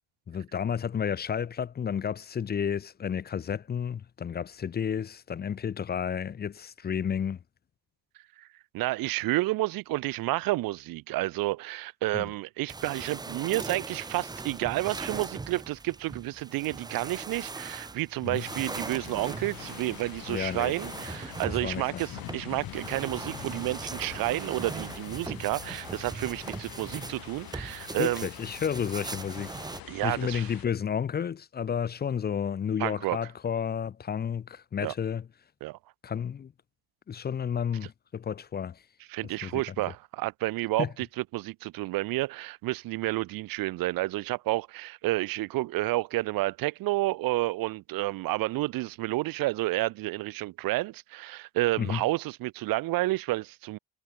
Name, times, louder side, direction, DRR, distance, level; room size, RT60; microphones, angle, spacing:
voice 1, 0.3-7.4 12.1-12.3 18.2-18.4 20.3-20.8 21.5-22.0 28.0-29.5 30.0-35.3 36.0-36.5 37.1-38.8 39.4-39.6 40.8-40.9 51.8-52.0, left 7 dB, 30° left, 0.6 m, -31 dB
voice 2, 8.7-28.3 29.9-30.4 32.8-33.2 34.8-34.9 35.6-35.8 39.1-40.9 41.3-53.8, right 18 dB, 75° right, 0.6 m, -30 dB
sound 1, 12.7-29.8, right 3 dB, 10° right, 0.6 m, -40 dB
sound 2, 18.4-30.7, left 14 dB, 75° left, 3.2 m, -45 dB
cardioid pair, 165°, 35 cm